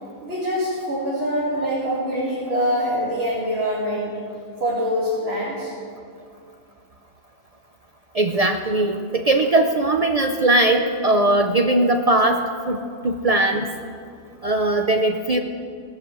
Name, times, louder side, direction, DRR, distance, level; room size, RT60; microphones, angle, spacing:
voice 1, 0.2-4.1 4.6-5.7, equal, 45° right, -8 dB, 2.9 m, -24 dB
voice 2, 8.1-13.7 14.4-15.4, right 2 dB, 65° right, 4 dB, 0.3 m, -20 dB
18.0 x 6.1 x 7.7 m, 2.4 s
omnidirectional pair, 1.5 m